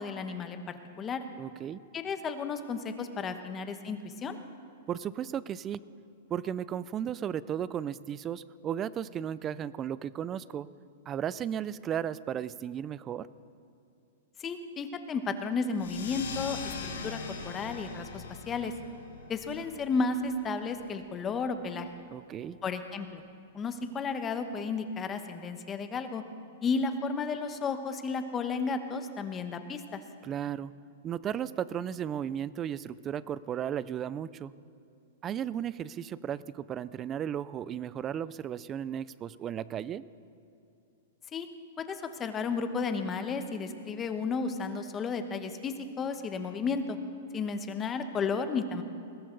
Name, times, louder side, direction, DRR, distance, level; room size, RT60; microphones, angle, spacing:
voice 1, 0.0-1.3 1.9-4.4 14.4-17.2 17.4-18.7 19.3-21.9 22.6-23.2 23.5-26.2 26.6-30.0 41.3-41.5 41.8-47.0 47.3-48.8, left 4 dB, 20° left, 8 dB, 1.1 m, -33 dB
voice 2, 1.4-1.8 4.9-5.8 6.3-10.7 11.1-13.3 22.1-22.6 30.2-30.7 31.0-34.5 35.2-40.0, right 9 dB, 25° right, 18 dB, 0.4 m, -35 dB
sound 1, 15.8-20.9, left 5 dB, 85° left, 2.3 m, -41 dB
21.0 x 17.5 x 4.0 m, 2.8 s
hypercardioid pair, 140°, 0 cm